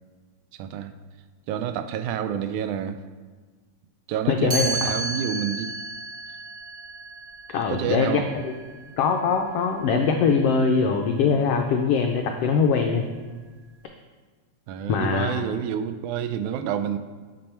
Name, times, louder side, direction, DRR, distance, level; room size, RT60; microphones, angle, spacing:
voice 1, 0.5-0.9 1.5-3.0 4.1-5.7 7.7-8.3 14.7-17.0, right 9 dB, 85° right, 10 dB, 2.0 m, -28 dB
voice 2, 4.3-4.7 7.5-13.0 14.9-15.4, left 5 dB, 85° left, 3 dB, 1.3 m, -22 dB
Chime, 4.5-10.4, right 2 dB, 30° right, 1.8 m, -33 dB
8.7 x 6.3 x 4.3 m, 1.4 s
omnidirectional pair, 3.4 m